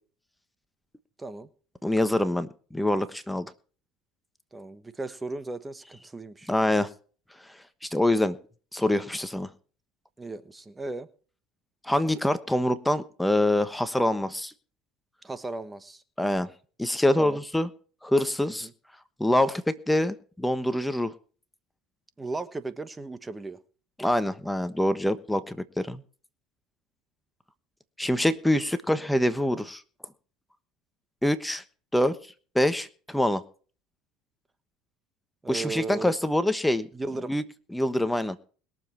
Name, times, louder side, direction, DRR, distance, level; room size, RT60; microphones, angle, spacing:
voice 1, 1.2-1.5 4.5-6.5 10.2-11.1 15.2-16.0 17.2-17.4 18.6-18.7 22.2-23.6 35.4-36.1 36.9-37.3, right 3 dB, 15° right, 1.2 m, -36 dB
voice 2, 1.8-3.5 6.5-6.9 7.8-8.4 8.7-9.5 11.8-14.5 16.2-16.5 16.8-17.7 18.0-18.7 19.2-21.1 24.0-26.0 28.0-29.8 31.2-31.6 31.9-32.1 32.5-33.4 35.5-36.9 37.3-37.4 37.7-38.4, left 1 dB, 5° left, 1.2 m, -25 dB
21.5 x 7.3 x 4.5 m
hypercardioid pair, 80°, 0 cm